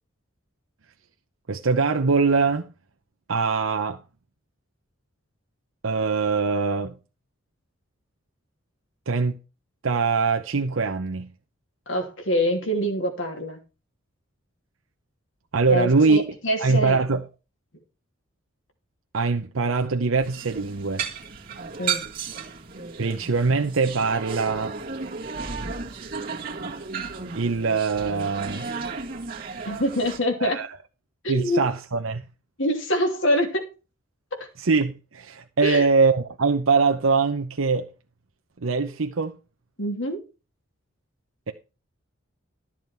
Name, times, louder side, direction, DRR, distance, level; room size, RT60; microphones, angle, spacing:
voice 1, 1.5-2.7 3.3-4.0 5.8-6.9 9.1-9.4 9.8-11.3 15.5-16.2 16.6-17.2 19.1-21.0 23.0-24.8 27.3-28.7 30.4-30.7 31.3-32.2 34.6-37.9 38.6-39.4 41.5-41.6, right 4 dB, 75° right, 0.8 m, -22 dB
voice 2, 11.9-13.6 15.7-17.0 21.8-22.1 29.6-30.6 31.2-31.6 32.6-33.7 34.3-34.5 35.6-35.9 39.8-40.2, equal, 65° left, 3.0 m, -25 dB
sound 1, 20.2-30.2, right 5 dB, 45° right, 1.9 m, -34 dB
13.5 x 7.2 x 4.5 m
head